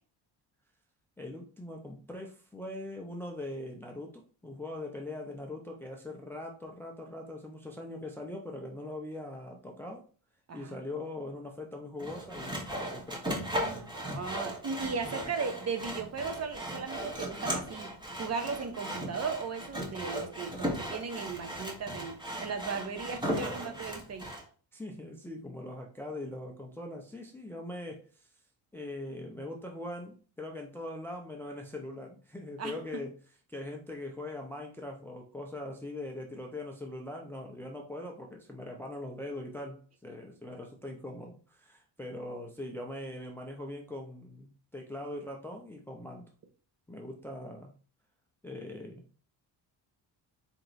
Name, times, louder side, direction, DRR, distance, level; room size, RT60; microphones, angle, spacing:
voice 1, 1.2-10.0 10.5-13.2 15.0-15.1 24.7-28.3 28.7-33.2 33.5-46.2 46.9-47.7 48.4-49.0, left 1 dB, 5° left, 1 dB, 0.5 m, -41 dB
Sawing, 12.0-24.4, equal, 10° right, 1.0 m, -37 dB
voice 2, 13.7-24.3 32.6-33.0, right 5 dB, 35° right, 6 dB, 0.8 m, -37 dB
4.4 x 2.9 x 3.9 m, 0.40 s
cardioid pair, 150°, 42 cm